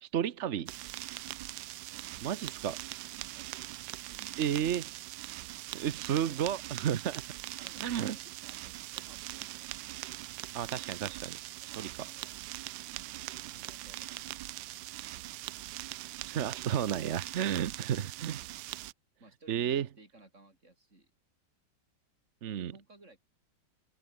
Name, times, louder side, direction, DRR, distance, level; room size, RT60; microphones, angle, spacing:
voice 1, 0.0-0.7 2.2-2.8 4.4-4.8 5.7-7.2 7.8-8.2 10.5-11.4 11.8-11.9 16.2-18.4 19.5-19.9 22.4-22.7, right 9 dB, 55° right, 0.8 m, -32 dB
sound 1, 0.7-18.9, right 16 dB, 80° right, 1.3 m, -42 dB
voice 2, 1.4-2.5 3.1-3.6 4.1-4.8 7.6-9.9 11.6-12.3 12.9-14.6 19.2-21.1 22.5-23.2, right 2 dB, 40° right, 5.3 m, -59 dB
open air
omnidirectional pair, 2.1 m